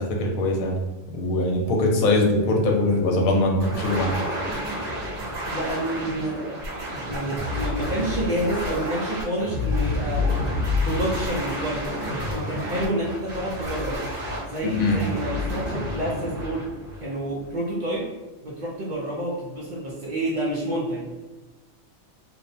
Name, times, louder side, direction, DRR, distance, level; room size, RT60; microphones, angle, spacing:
voice 1, 0.2-0.8 1.1-4.1 14.6-15.0, left 2 dB, 85° left, 1 dB, 1.0 m, -22 dB
sound 1, 3.6-17.5, left 2 dB, 45° right, 1.0 m, -29 dB
voice 2, 5.5-6.6 7.1-10.3 10.8-11.9 12.3-14.0 14.5-16.7 17.0-18.1 18.4-21.1, right 1 dB, 80° right, -5 dB, 0.4 m, -29 dB
2.7 x 2.0 x 2.6 m, 1.1 s
omnidirectional pair, 1.4 m